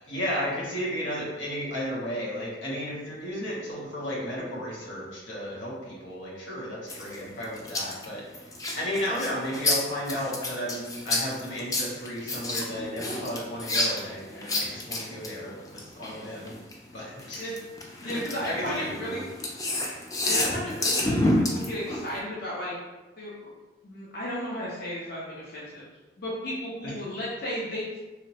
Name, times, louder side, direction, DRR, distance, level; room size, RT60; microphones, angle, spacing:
voice 1, 0.1-8.5 8.7-16.5 16.9-17.5 18.0-18.2 18.5-18.9 26.8-27.0, equal, 85° left, -5 dB, 0.8 m, -33 dB
sound 1, 6.9-16.7 17.2-22.2, left 1 dB, 20° left, 0.3 m, -29 dB
voice 2, 18.0-19.2 20.2-22.7 23.2-23.5 23.8-25.8 26.2-28.0, equal, 55° left, -7 dB, 0.6 m, -34 dB
2.9 x 2.1 x 2.7 m, 1.1 s
head